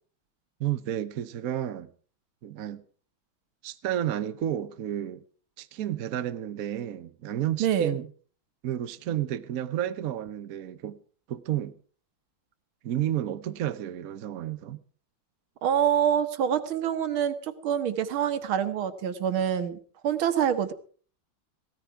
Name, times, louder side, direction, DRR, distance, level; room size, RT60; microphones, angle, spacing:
voice 1, 0.6-1.9 2.4-2.8 3.6-5.2 5.6-8.1 8.6-11.0 11.3-11.8 12.8-14.8, right 11 dB, 60° right, 1.0 m, -31 dB
voice 2, 7.6-8.0 15.6-19.8 20.0-20.7, right 9 dB, 75° right, 1.9 m, -26 dB
16.5 x 14.0 x 4.6 m
omnidirectional pair, 2.3 m